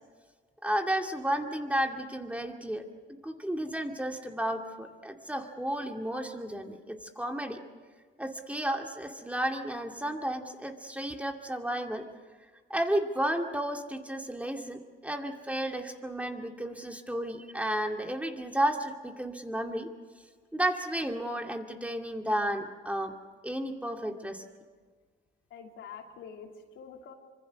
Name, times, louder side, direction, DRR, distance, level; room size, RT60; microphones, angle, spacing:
voice 1, 0.6-2.8 3.2-7.6 8.2-12.0 12.7-19.9 20.5-23.1 23.4-24.4, right 1 dB, 5° right, 3 dB, 2.3 m, -32 dB
voice 2, 25.5-27.1, left 6 dB, 85° left, 1 dB, 3.2 m, -46 dB
25.5 x 24.0 x 6.3 m, 1.5 s
cardioid pair, 90°, 20 cm